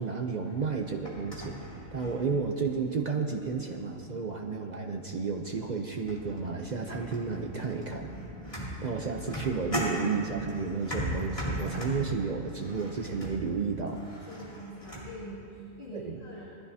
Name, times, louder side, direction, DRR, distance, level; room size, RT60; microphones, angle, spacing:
voice 1, 0.0-8.1 8.4-14.0 15.9-16.2, right 5 dB, 75° right, 3 dB, 0.4 m, -32 dB
sound 1, 0.6-2.8 3.3-3.8 4.8-4.9 5.4-5.7 6.0-15.2, equal, 20° left, 2.8 m, -38 dB
voice 2, 14.2-16.5, equal, 40° left, -7 dB, 2.2 m, -44 dB
20.5 x 14.0 x 2.8 m, 2.7 s
omnidirectional pair, 1.7 m